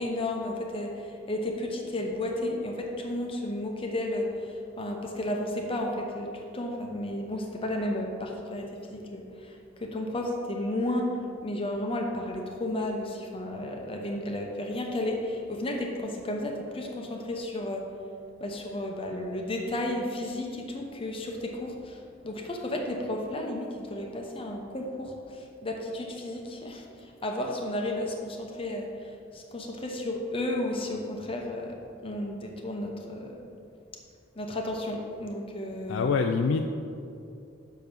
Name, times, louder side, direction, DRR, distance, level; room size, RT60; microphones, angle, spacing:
voice 1, 0.0-17.9 18.4-33.4 34.3-36.1, left 1 dB, 30° left, 1 dB, 0.8 m, -33 dB
voice 2, 35.9-36.6, left 5 dB, 90° left, 5 dB, 0.4 m, -25 dB
6.7 x 5.2 x 5.9 m, 2.5 s
head